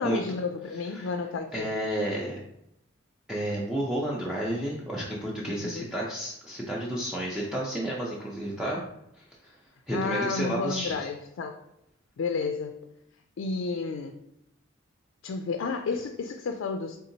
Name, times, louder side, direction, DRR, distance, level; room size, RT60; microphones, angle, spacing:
voice 1, 0.0-1.7 5.6-5.9 9.9-11.6 12.2-12.8 13.4-14.2 15.2-17.0, left 4 dB, 75° left, 5 dB, 0.3 m, -31 dB
voice 2, 1.5-2.4 3.3-8.9 9.2-9.6 9.9-11.1, right 1 dB, 5° right, -5 dB, 0.5 m, -31 dB
4.1 x 3.6 x 2.8 m, 0.80 s
head